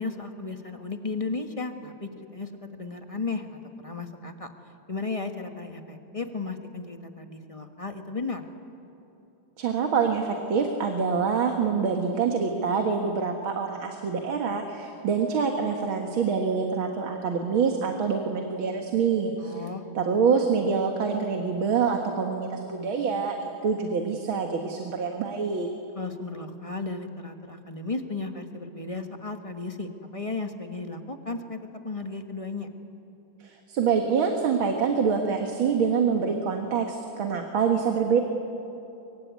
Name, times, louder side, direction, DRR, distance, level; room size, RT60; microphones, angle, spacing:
voice 1, 0.0-4.5 4.9-8.5 19.4-19.8 25.9-31.6 31.8-32.7, left 3 dB, 20° left, 6 dB, 1.3 m, -34 dB
voice 2, 9.6-19.6 19.9-25.7 33.4-38.2, right 6 dB, 75° right, 4 dB, 2.4 m, -26 dB
24.5 x 24.0 x 9.5 m, 3.0 s
omnidirectional pair, 2.3 m